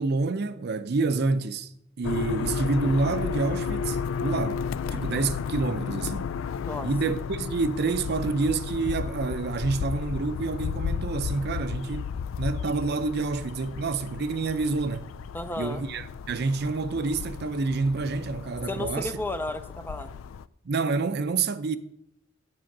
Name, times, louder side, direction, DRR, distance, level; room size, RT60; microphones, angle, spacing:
voice 1, 0.0-1.7 2.0-4.6 4.9-6.3 6.8-15.1 15.6-19.1 20.6-21.8, right 3 dB, 55° right, 0.5 m, -28 dB
sound 1, 2.0-20.5, left 6 dB, 85° left, 0.3 m, -33 dB
voice 2, 15.3-15.8 18.7-20.1, left 2 dB, 10° left, 0.4 m, -33 dB
7.7 x 6.1 x 6.0 m
head